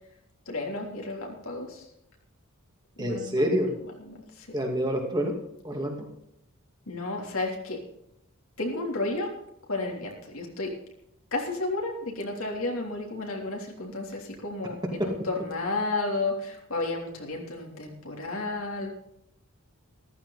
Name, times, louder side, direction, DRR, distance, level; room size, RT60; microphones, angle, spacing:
voice 1, 0.5-1.8 3.0-3.6 4.0-4.5 6.9-7.8 8.6-9.3 9.7-10.7 11.3-18.9, left 2 dB, 65° left, 0 dB, 3.4 m, -32 dB
voice 2, 3.0-3.7 4.5-5.3 5.6-6.1, equal, 20° right, 1 dB, 2.4 m, -27 dB
14.5 x 13.5 x 4.1 m, 0.79 s
head